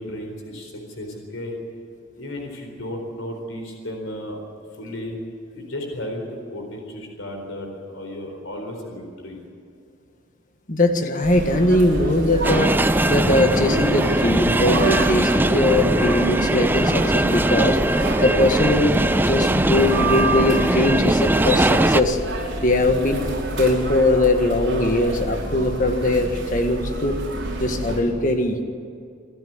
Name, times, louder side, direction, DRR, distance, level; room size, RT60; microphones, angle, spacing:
voice 1, 0.0-1.6 2.2-4.4 4.7-5.2 5.5-9.4, left 1 dB, 80° left, 2 dB, 4.2 m, -34 dB
voice 2, 10.7-12.7 13.1-17.8 18.2-22.2 22.6-23.2 23.6-27.2 27.6-28.6, left 1 dB, 40° left, 6 dB, 1.7 m, -20 dB
sound 1, 11.2-28.0, right 1 dB, 60° right, 5.6 m, -28 dB
sound 2, 12.4-22.0, right 1 dB, 10° right, 0.4 m, -20 dB
26.0 x 12.0 x 9.6 m, 2.4 s
head